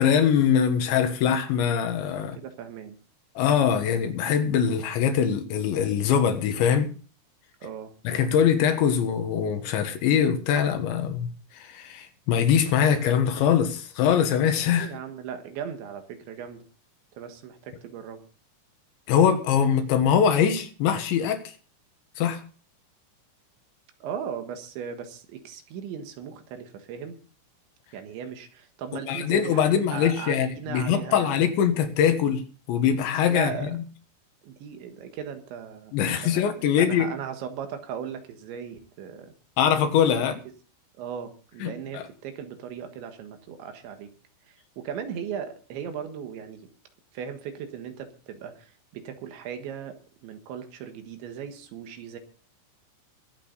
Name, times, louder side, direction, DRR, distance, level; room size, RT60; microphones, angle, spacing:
voice 1, 0.0-2.4 3.4-6.9 8.1-14.9 19.1-21.5 22.2-22.4 29.1-33.8 35.9-37.1 39.6-40.3 41.6-42.0, left 8 dB, 75° left, 3.6 m, -23 dB
voice 2, 2.4-3.0 7.6-7.9 14.7-16.7 17.2-18.2 24.0-27.2 27.9-31.5 33.3-33.7 34.4-35.9 36.2-36.4 36.8-39.3 40.1-40.3 41.0-44.1 44.5-46.7 47.1-52.2, right 8 dB, 70° right, 3.7 m, -37 dB
23.0 x 8.4 x 4.0 m
omnidirectional pair, 5.6 m